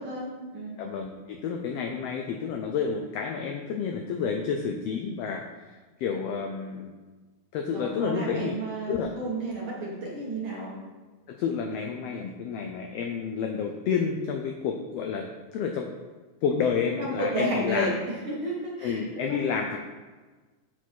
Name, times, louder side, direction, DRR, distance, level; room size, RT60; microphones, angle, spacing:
voice 1, 0.0-0.7 7.7-10.7 17.0-19.4, right 1 dB, 50° right, -4 dB, 1.9 m, -32 dB
voice 2, 0.8-5.7 6.0-6.9 7.5-8.6 8.9-9.1 11.3-15.9 16.4-17.9 18.8-19.8, left 6 dB, 85° left, 3 dB, 1.4 m, -30 dB
8.4 x 4.6 x 4.5 m, 1.3 s
omnidirectional pair, 3.5 m